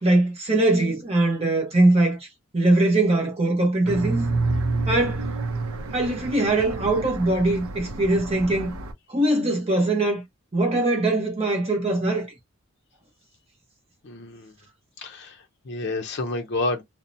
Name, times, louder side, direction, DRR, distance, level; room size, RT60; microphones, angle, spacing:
voice 1, 0.0-2.3 2.5-4.2 4.9-5.2 5.9-8.8 9.1-10.2 10.5-12.3, right 2 dB, 25° right, 0.8 m, -21 dB
sound 1, 3.9-8.9, right 3 dB, 75° right, 0.5 m, -29 dB
voice 2, 14.0-14.5 15.0-16.8, left 2 dB, 50° left, 0.5 m, -30 dB
2.6 x 2.1 x 2.5 m
head